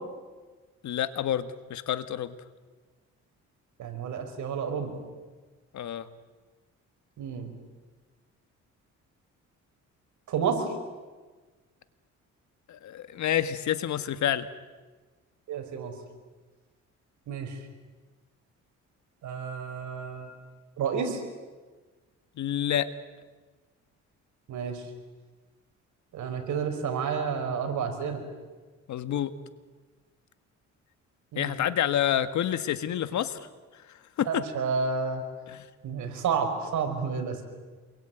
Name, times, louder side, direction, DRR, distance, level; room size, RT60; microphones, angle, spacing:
voice 1, 0.8-2.3 5.7-6.1 12.7-14.5 22.4-22.9 28.9-29.3 31.4-33.4 34.2-34.4 35.5-35.6, left 10 dB, 70° left, 11 dB, 1.8 m, -28 dB
voice 2, 3.8-4.9 7.2-7.5 10.3-10.6 15.5-15.9 17.3-17.5 19.2-20.3 20.8-21.2 24.5-24.8 26.1-28.2 31.3-31.5 34.3-35.2 35.8-37.4, right 6 dB, 75° right, 5 dB, 5.5 m, -30 dB
28.5 x 22.5 x 9.3 m, 1.3 s
cardioid pair, 90°, 30 cm